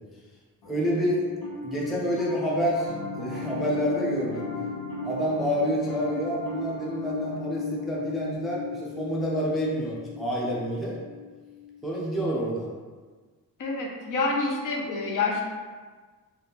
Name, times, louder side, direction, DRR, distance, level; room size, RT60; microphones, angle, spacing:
Piano, 0.6-12.1, left 5 dB, 90° left, 1.0 m, -37 dB
voice 1, 0.7-1.2 1.6-4.5 5.0-11.0 11.8-12.7, equal, ahead, -5 dB, 0.3 m, -28 dB
sound 1, 2.9-8.3, left 3 dB, 30° left, 1.0 m, -40 dB
voice 2, 13.6-15.4, left 3 dB, 60° left, 0 dB, 0.6 m, -27 dB
3.4 x 2.4 x 2.8 m, 1.4 s
wide cardioid pair, 175°, 35 cm